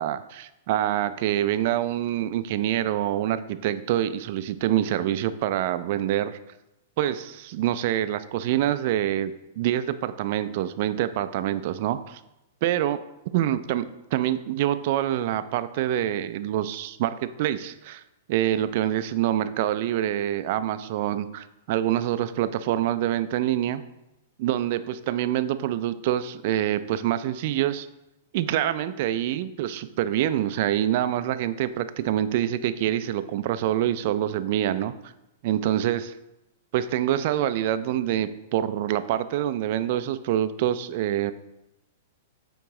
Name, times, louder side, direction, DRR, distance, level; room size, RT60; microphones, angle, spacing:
voice 1, 0.0-6.4 7.0-12.2 12.6-13.0 13.3-13.8 14.1-18.0 18.3-23.8 24.4-27.9 28.3-34.9 35.4-36.1 36.7-41.3, right 12 dB, 55° right, 12 dB, 0.3 m, -26 dB
8.4 x 3.0 x 3.7 m, 0.93 s
hypercardioid pair, 130°, 0 cm